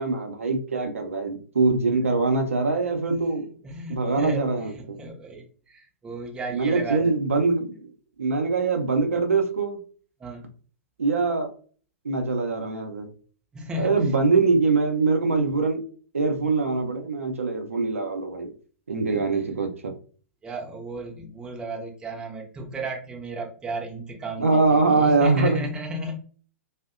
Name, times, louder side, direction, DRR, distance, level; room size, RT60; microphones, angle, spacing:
voice 1, 0.0-3.4 3.9-5.0 6.5-7.9 8.2-9.8 11.0-11.5 12.0-13.1 13.8-15.8 16.1-18.5 18.9-19.9 24.4-25.6, right 3 dB, 70° right, 4 dB, 0.5 m, -23 dB
voice 2, 3.1-7.1 10.2-10.5 13.5-14.1 19.1-19.5 20.4-26.2, right 1 dB, 10° right, 0 dB, 0.5 m, -34 dB
2.6 x 2.1 x 2.3 m, 0.42 s
figure-of-eight pair, 110°, 7 cm